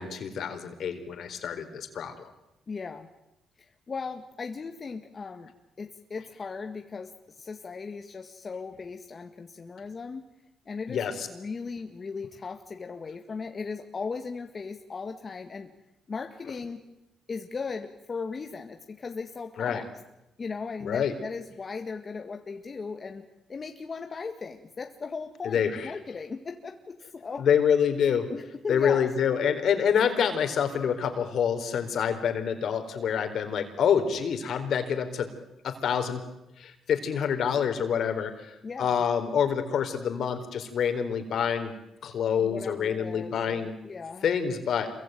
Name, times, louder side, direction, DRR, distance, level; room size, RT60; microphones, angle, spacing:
voice 1, 0.0-2.1 10.9-11.3 19.6-19.8 20.8-21.1 25.4-25.9 27.4-28.3 28.7-35.3 35.6-36.3 36.6-41.7 42.0-43.8 44.2-44.9, left 7 dB, 65° left, 8 dB, 4.1 m, -27 dB
voice 2, 2.7-3.1 3.6-5.5 5.8-7.1 7.4-10.2 10.7-15.7 16.1-16.8 17.3-19.9 20.4-23.2 23.5-27.5 28.3-29.1 29.4-29.5 38.6-39.0 42.4-44.3, left 4 dB, 35° left, 5 dB, 1.9 m, -37 dB
27.0 x 23.0 x 9.3 m, 0.90 s
cardioid pair, 90°, 0 cm